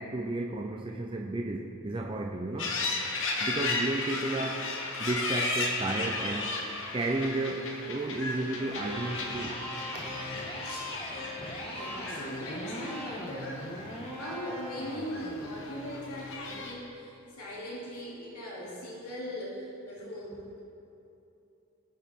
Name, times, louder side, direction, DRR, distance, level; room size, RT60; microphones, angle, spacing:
voice 1, 0.0-2.8 3.3-4.7 5.0-6.5 6.9-9.6 9.9-10.0 12.0-12.3, right 2 dB, 20° right, 1 dB, 0.5 m, -33 dB
sound 1, 2.6-16.7, left 3 dB, 60° left, 1.2 m, -35 dB
Electric guitar, 8.7-16.7, left 1 dB, 25° left, 1.5 m, -40 dB
voice 2, 10.6-11.0 11.6-20.6, equal, 80° left, -6 dB, 2.7 m, -40 dB
18.5 x 6.5 x 3.7 m, 2.7 s
head